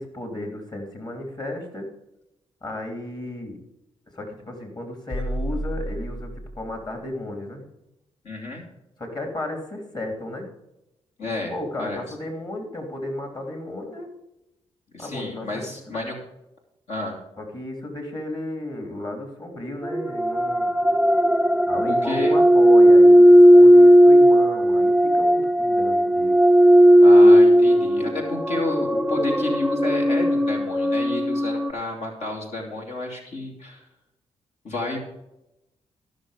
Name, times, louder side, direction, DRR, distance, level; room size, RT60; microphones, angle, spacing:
voice 1, 0.0-1.9 2.6-3.6 4.1-6.3 6.6-7.6 9.0-10.5 11.5-14.1 15.0-15.5 17.4-20.7 21.7-26.4, left 1 dB, 40° left, 3 dB, 3.0 m, -34 dB
sound 1, 5.1-6.9, right 1 dB, 55° left, 1.9 m, -31 dB
voice 2, 8.2-8.6 11.2-11.5 11.8-12.0 14.9-16.2 16.9-17.2 21.9-22.3 27.0-33.8 34.6-35.0, left 2 dB, 70° left, 0 dB, 2.7 m, -31 dB
sound 2, 19.8-31.7, equal, ahead, 0.4 m, -15 dB
13.5 x 6.5 x 5.1 m, 0.89 s
cardioid pair, 65°, 12 cm